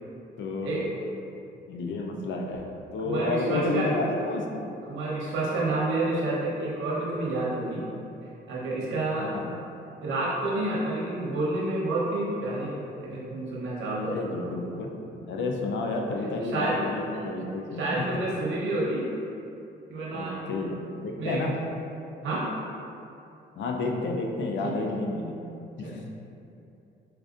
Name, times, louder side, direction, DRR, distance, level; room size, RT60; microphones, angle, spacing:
voice 1, 0.4-0.9 1.7-2.7 2.9-4.6 9.2-9.5 14.1-14.9 15.3-18.1 20.1-21.6 23.6-25.5 25.8-26.0, left 2 dB, 70° left, 1 dB, 0.5 m, -30 dB
voice 2, 3.0-4.0 4.9-7.8 8.5-9.3 10.0-14.2 16.4-16.8 17.1-17.2 17.8-19.1 19.9-20.4 21.2-21.4 22.2-22.4 24.6-24.7 25.8-26.0, right 2 dB, 75° right, -6 dB, 1.0 m, -29 dB
4.6 x 2.5 x 2.5 m, 2.7 s
cardioid pair, 90°, 20 cm